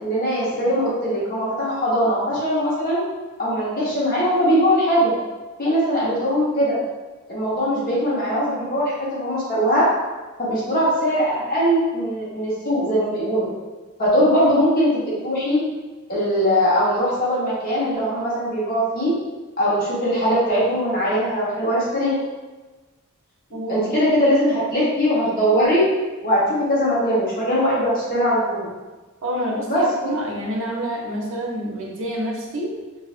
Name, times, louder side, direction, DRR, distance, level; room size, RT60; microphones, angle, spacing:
voice 1, 0.0-3.0 3.4-5.1 5.6-6.8 7.3-9.9 10.4-13.5 14.0-14.9 15.2-15.6 16.1-19.1 19.6-22.2 23.7-25.9 26.2-28.7 29.7-29.9, equal, 40° left, -7 dB, 1.0 m, -20 dB
voice 2, 23.5-23.9 29.2-32.7, right 1 dB, 60° right, -2 dB, 0.7 m, -27 dB
3.1 x 2.4 x 2.4 m, 1.2 s
head